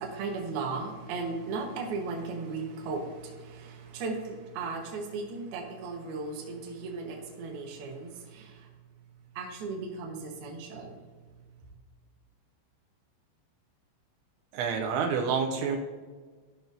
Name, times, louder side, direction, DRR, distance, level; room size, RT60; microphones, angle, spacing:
voice 1, 0.0-8.7 9.4-11.0, right 4 dB, 65° right, 1 dB, 2.6 m, -36 dB
voice 2, 14.5-15.8, right 6 dB, 85° right, 3 dB, 3.0 m, -28 dB
13.5 x 5.9 x 2.7 m, 1.5 s
omnidirectional pair, 5.3 m